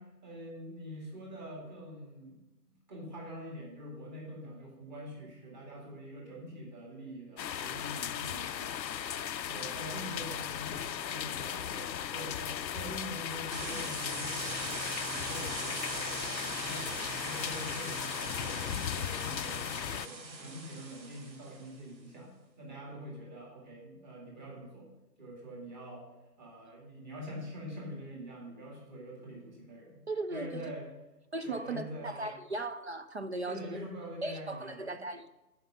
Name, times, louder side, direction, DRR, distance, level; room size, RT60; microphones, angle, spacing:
voice 1, 0.0-2.4 2.9-9.1 9.4-16.1 16.5-24.9 25.2-26.1 26.4-30.9 31.4-32.3 33.5-35.0, equal, 25° right, 2.1 m, -45 dB
sound 1, 7.4-20.1, left 9 dB, 85° left, 0.6 m, -37 dB
sound 2, 13.5-21.7, right 3 dB, 90° right, 1.3 m, -41 dB
voice 2, 30.1-30.6 31.3-33.8 34.2-35.3, right 2 dB, 45° right, 0.5 m, -37 dB
12.5 x 4.5 x 7.1 m
figure-of-eight pair, 145°, 50 cm